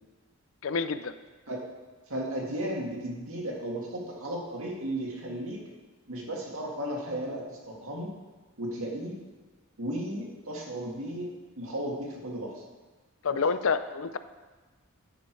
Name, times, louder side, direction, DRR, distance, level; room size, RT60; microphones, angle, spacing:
voice 1, 0.6-1.1 13.2-14.2, left 5 dB, 70° left, 12 dB, 0.5 m, -28 dB
voice 2, 2.1-5.6 6.1-8.1 8.6-9.1 9.8-11.3 11.6-12.6 13.3-13.4, right 1 dB, 75° right, -2 dB, 1.9 m, -35 dB
10.0 x 6.4 x 4.6 m, 1.3 s
head